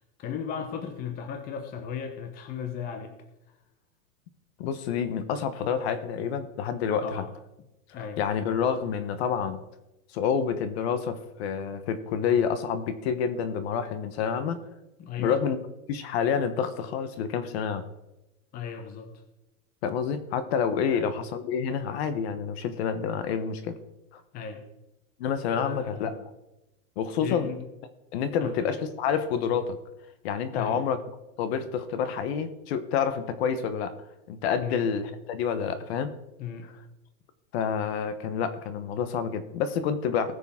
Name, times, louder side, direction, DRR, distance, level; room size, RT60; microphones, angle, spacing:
voice 1, 0.0-3.1 7.0-7.3 7.9-8.2 15.0-15.4 18.5-19.1 20.9-21.1 24.3-24.6 25.6-26.2 27.2-27.6 28.4-28.8 30.5-30.8 34.6-34.9 36.4-36.7, left 7 dB, 20° left, 6 dB, 0.9 m, -36 dB
voice 2, 4.6-7.2 8.2-9.6 10.1-14.6 15.2-15.6 15.9-17.8 19.8-23.7 24.1-24.2 25.2-26.2 27.0-27.5 28.1-29.8 30.2-31.0 31.4-33.9 34.3-36.1 37.5-40.3, left 7 dB, 45° left, 11 dB, 1.1 m, -28 dB
19.5 x 6.8 x 3.7 m, 0.94 s
supercardioid pair, 160°, 45 cm